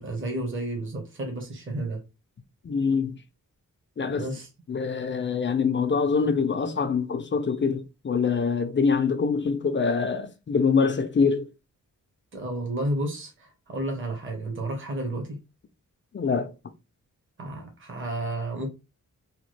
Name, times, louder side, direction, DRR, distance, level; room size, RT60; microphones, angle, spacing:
voice 1, 0.0-2.0 4.1-4.5 12.3-15.4 17.4-18.7, right 1 dB, 35° right, 0.9 m, -31 dB
voice 2, 2.6-3.2 4.0-4.3 4.7-11.5 16.1-16.5, left 5 dB, 35° left, 0.4 m, -24 dB
3.0 x 2.2 x 3.1 m
wide cardioid pair, 120°, 33 cm